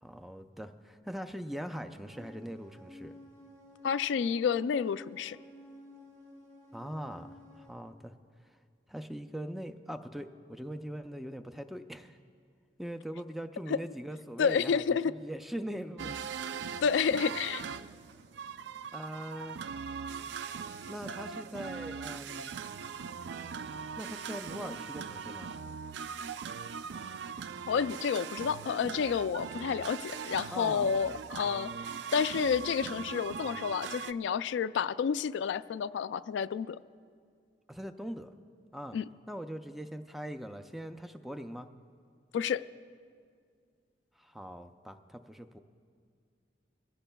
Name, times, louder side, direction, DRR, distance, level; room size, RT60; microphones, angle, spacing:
voice 1, 0.0-3.2 6.7-8.1 8.4-8.6 8.9-12.2 12.8-16.2 18.9-19.6 20.9-22.6 24.0-25.5 30.5-31.2 37.7-38.3 38.7-39.0 39.3-41.7 44.2-45.6, equal, ahead, 8 dB, 0.4 m, -41 dB
sound 1, 1.8-7.7, left 1 dB, 35° right, 2.4 m, -52 dB
voice 2, 3.8-5.4 14.4-15.1 16.8-17.7 27.7-31.7 32.1-36.8 38.9-39.1 42.3-42.6, left 6 dB, 85° left, 15 dB, 0.3 m, -30 dB
sound 2, 16.0-34.1, right 6 dB, 75° right, 0.4 m, -40 dB
23.0 x 15.5 x 2.3 m, 2.2 s
head